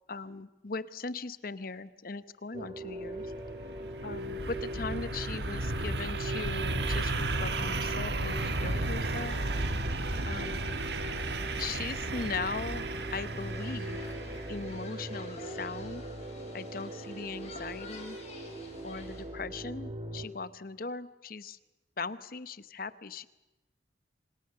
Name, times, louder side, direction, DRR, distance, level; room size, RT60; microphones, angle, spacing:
voice 1, 0.1-3.3 4.0-9.4 10.3-10.7 11.6-14.0 14.5-16.0 16.5-18.2 18.8-21.6 22.0-23.3, left 4 dB, 50° left, 15 dB, 0.9 m, -39 dB
sound 1, 2.5-20.3, right 1 dB, 30° right, 1.9 m, -41 dB
sound 2, 3.1-14.8, right 2 dB, 65° right, 1.5 m, -34 dB
sound 3, 8.2-19.2, left 3 dB, 35° left, 6.6 m, -52 dB
27.5 x 25.0 x 6.8 m, 1.1 s
head